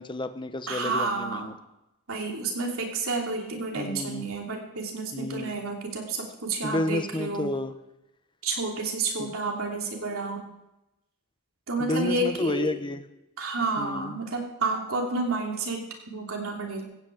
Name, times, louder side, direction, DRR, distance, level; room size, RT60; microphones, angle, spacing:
voice 1, 0.0-1.5 3.8-4.3 5.1-5.6 6.6-7.7 9.2-9.3 11.8-13.1 13.8-14.2, left 1 dB, 20° left, 9 dB, 1.0 m, -31 dB
voice 2, 0.7-1.5 2.1-7.5 8.4-10.5 11.7-12.7 13.4-16.8, right 3 dB, 70° right, 0 dB, 3.0 m, -30 dB
15.5 x 6.1 x 8.5 m, 0.90 s
head